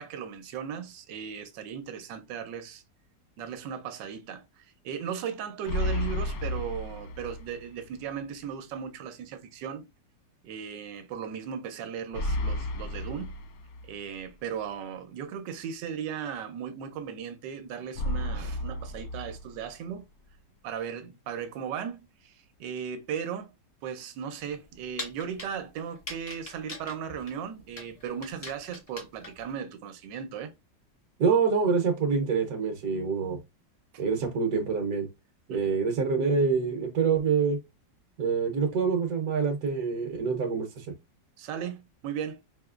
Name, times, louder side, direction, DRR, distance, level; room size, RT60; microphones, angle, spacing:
voice 1, 0.0-2.8 3.4-9.9 10.4-13.4 13.8-20.1 20.6-23.5 23.8-30.5 35.5-35.6 41.4-42.4, right 7 dB, 75° right, 1.3 m, -37 dB
sound 1, 5.7-7.7 8.0-8.1 12.1-14.1 17.9-19.9, left 1 dB, 70° left, 0.9 m, -32 dB
sound 2, 24.4-29.5, left 2 dB, 45° left, 0.5 m, -43 dB
voice 2, 31.2-33.4 34.0-35.1 35.5-37.6 38.2-40.9, right 5 dB, 60° right, 1.2 m, -26 dB
4.9 x 2.8 x 2.4 m
omnidirectional pair, 2.0 m